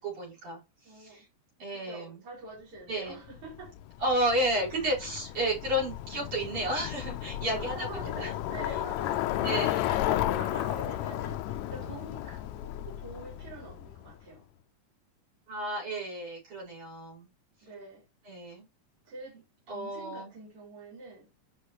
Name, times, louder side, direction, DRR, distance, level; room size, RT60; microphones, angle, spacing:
voice 1, 0.0-1.2 1.6-2.2 2.9-3.2 4.0-8.3 9.4-9.9 15.5-17.3 18.2-18.7 19.7-20.3, right 1 dB, 65° right, 6.4 m, -32 dB
voice 2, 0.8-1.3 1.7-3.7 7.4-14.4 17.6-18.1 19.0-19.4 19.7-21.3, right 3 dB, 45° right, 5.3 m, -45 dB
Bicycle, 3.3-14.2, left 13 dB, 80° left, 1.7 m, -33 dB
9.7 x 5.5 x 3.1 m
omnidirectional pair, 3.7 m